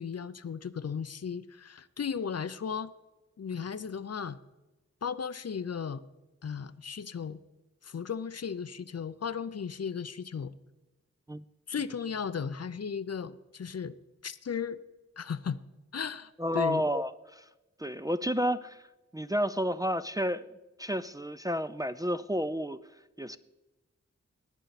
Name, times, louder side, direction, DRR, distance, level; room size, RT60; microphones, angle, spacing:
voice 1, 0.0-2.9 3.4-4.4 5.0-6.0 6.4-7.4 7.8-10.5 11.7-13.9 14.2-14.8 15.2-15.6 15.9-16.8, left 6 dB, 60° left, 14 dB, 0.6 m, -35 dB
voice 2, 16.4-17.5 17.8-18.8 19.1-20.5 20.8-22.8 23.2-23.4, equal, 15° right, 11 dB, 0.4 m, -31 dB
18.0 x 9.1 x 4.1 m, 1.1 s
wide cardioid pair, 55°, 29 cm